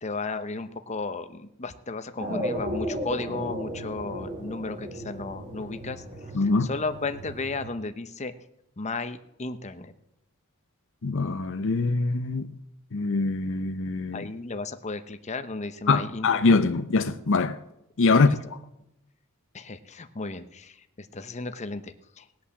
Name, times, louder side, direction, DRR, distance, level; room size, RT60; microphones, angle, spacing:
voice 1, 0.0-6.0 6.3-8.3 8.8-9.9 14.1-16.6 18.1-18.4 19.5-22.3, left 3 dB, 30° left, 0.9 m, -34 dB
sound 1, 2.2-7.7, equal, 35° right, 4.3 m, -35 dB
voice 2, 6.3-6.7 11.0-12.5 12.9-14.3 15.9-17.6 18.0-18.3, left 3 dB, 60° left, 0.7 m, -23 dB
19.0 x 8.6 x 7.1 m
head